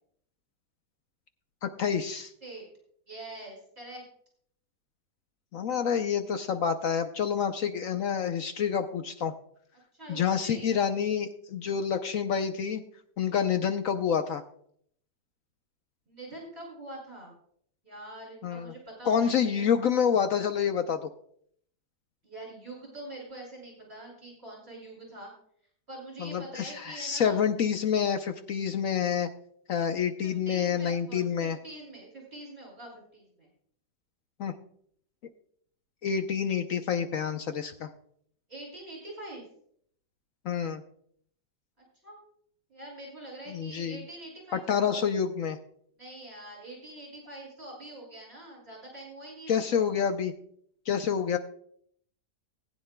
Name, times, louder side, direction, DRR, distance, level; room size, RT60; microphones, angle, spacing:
voice 1, 1.6-2.3 5.5-9.3 10.1-12.8 13.2-14.4 18.4-18.7 19.1-21.1 26.2-29.3 29.7-31.6 34.4-34.5 36.0-37.9 40.4-40.8 43.5-44.0 44.5-45.6 49.5-50.3 50.9-51.4, left 7 dB, 65° left, 8 dB, 1.0 m, -28 dB
voice 2, 3.1-4.0 9.9-10.7 13.2-13.3 16.1-17.3 17.8-19.7 22.2-25.3 25.9-27.4 30.2-33.5 38.5-39.5 41.8-42.2 42.7-45.0 46.0-49.8, right 1 dB, 40° right, -3 dB, 3.3 m, -45 dB
19.0 x 9.5 x 2.2 m, 0.64 s
omnidirectional pair, 1.7 m